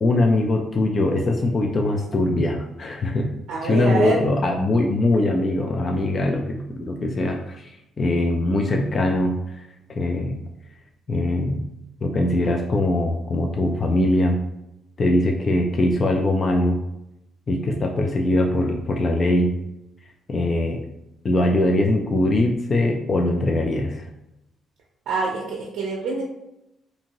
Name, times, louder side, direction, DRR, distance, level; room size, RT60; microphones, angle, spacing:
voice 1, 0.0-3.3 3.6-10.4 11.1-11.6 12.0-14.4 15.0-16.8 17.5-19.5 20.3-20.8 21.2-24.0, left 1 dB, 40° left, 2 dB, 0.4 m, -22 dB
voice 2, 3.5-4.2 25.1-26.2, right 3 dB, 75° right, -3 dB, 0.5 m, -25 dB
2.7 x 2.6 x 2.9 m, 0.86 s
cardioid pair, 90°, 0 cm